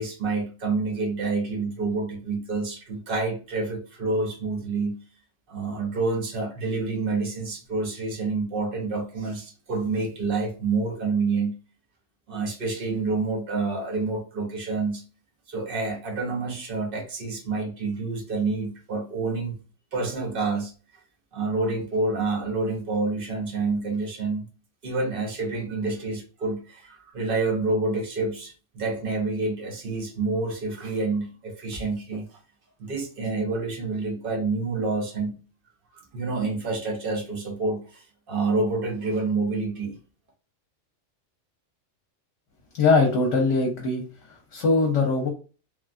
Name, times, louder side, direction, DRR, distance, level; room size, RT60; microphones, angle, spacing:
voice 1, 0.0-5.0 5.5-11.6 12.3-15.0 15.5-19.6 19.9-20.7 21.3-24.5 24.8-32.3 32.8-35.4 35.9-40.0, right 3 dB, 50° right, 1.0 m, -28 dB
voice 2, 42.8-45.3, left 3 dB, 65° left, 1.0 m, -22 dB
3.3 x 2.3 x 2.4 m
omnidirectional pair, 1.3 m